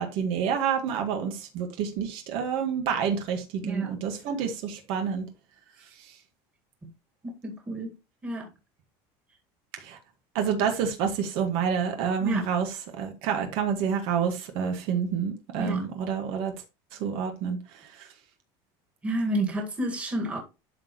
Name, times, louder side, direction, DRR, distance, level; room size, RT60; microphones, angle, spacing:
voice 1, 0.0-5.2 9.8-10.0 10.4-16.5 17.0-18.1, right 7 dB, 60° right, 1.8 m, -28 dB
voice 2, 3.6-4.0 7.4-7.9 8.2-8.5 12.2-12.4 15.6-15.8 19.0-20.4, right 1 dB, 15° right, 2.1 m, -30 dB
12.0 x 4.3 x 3.2 m
cardioid pair, 155°, 10 cm